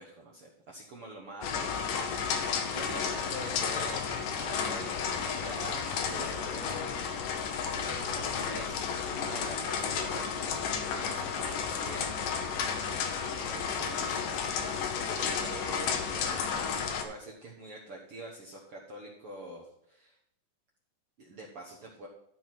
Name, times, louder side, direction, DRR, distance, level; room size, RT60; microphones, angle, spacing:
voice 1, 0.0-1.9 2.2-7.2 7.8-12.2 13.3-14.8 15.1-20.2 21.2-22.1, right 2 dB, 65° right, -3 dB, 1.5 m, -45 dB
sound 1, 1.4-17.0, left 6 dB, 75° left, 2.5 m, -32 dB
12.5 x 4.6 x 5.8 m, 0.77 s
omnidirectional pair, 4.1 m